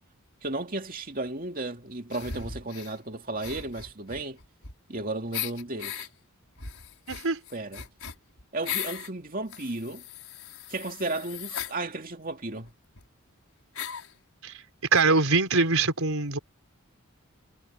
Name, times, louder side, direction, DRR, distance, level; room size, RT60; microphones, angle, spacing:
voice 1, 0.4-4.4 4.9-6.1 7.5-7.9 8.5-10.0 10.7-12.7, right 2 dB, 40° right, 2.5 m, -34 dB
sound 1, 2.1-2.9 3.4-5.0 5.3-6.1 6.6-9.1 9.5-11.8 12.7-12.8 13.0-13.1 13.7-14.1, left 9 dB, 85° left, 5.5 m, -38 dB
voice 2, 7.1-7.4 14.4-14.5 14.9-16.4, right 3 dB, 80° right, 4.1 m, -23 dB
head